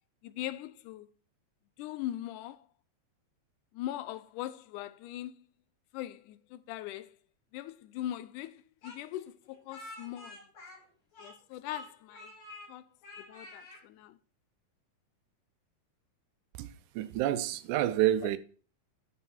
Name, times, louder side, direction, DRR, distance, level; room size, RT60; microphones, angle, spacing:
voice 1, 0.2-1.1 1.8-2.6 3.7-5.4 5.9-7.1 7.5-10.4 11.2-12.3 12.7-12.9 13.3-14.2, left 13 dB, 85° left, 2.1 m, -40 dB
Speech, 8.8-11.4 11.7-12.7 13.0-13.8, left 2 dB, 65° left, 4.1 m, -49 dB
voice 2, 16.6-18.4, right 12 dB, 85° right, 2.2 m, -29 dB
13.0 x 4.7 x 4.4 m
omnidirectional pair, 3.6 m